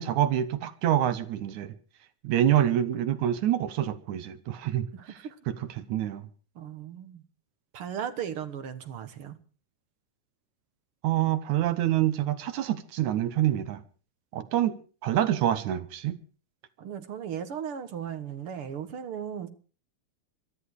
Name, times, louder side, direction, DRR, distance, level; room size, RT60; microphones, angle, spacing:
voice 1, 0.0-1.7 2.2-4.9 5.5-6.2 11.0-13.8 14.3-16.2, right 11 dB, 75° right, 2.3 m, -26 dB
voice 2, 4.9-5.4 6.6-7.2 7.7-9.4 16.8-19.5, right 8 dB, 55° right, 2.0 m, -36 dB
23.0 x 13.5 x 4.8 m
omnidirectional pair, 3.5 m